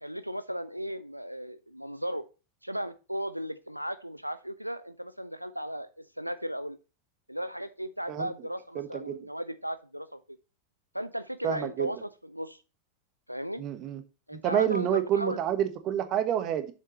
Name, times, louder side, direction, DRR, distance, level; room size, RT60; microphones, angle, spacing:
voice 1, 0.0-2.2 2.6-6.8 7.3-10.4 10.9-12.6 13.3-13.6 14.3-15.4, equal, 90° right, 0.4 m, -36 dB
voice 2, 8.7-9.2 11.4-11.9 13.6-14.0 14.4-16.7, right 10 dB, 35° right, 1.2 m, -28 dB
7.4 x 7.4 x 3.0 m
figure-of-eight pair, 90°, 0 cm